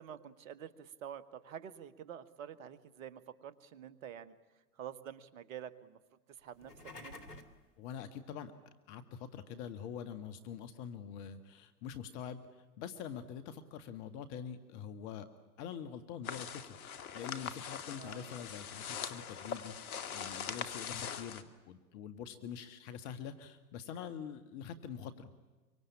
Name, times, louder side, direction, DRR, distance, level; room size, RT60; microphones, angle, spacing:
voice 1, 0.0-4.3 4.8-6.0 6.4-6.7 7.0-7.3 17.9-18.4, right 9 dB, 60° right, 13 dB, 1.9 m, -48 dB
sound 1, 6.5-7.6, left 2 dB, 90° left, 2.5 m, -50 dB
voice 2, 7.8-8.5 8.9-15.3 15.6-25.3, left 8 dB, 45° left, 10 dB, 1.9 m, -45 dB
sound 2, 16.2-21.4, left 7 dB, 65° left, 2.3 m, -42 dB
25.0 x 24.5 x 8.7 m, 1.2 s
hypercardioid pair, 100°, 45 cm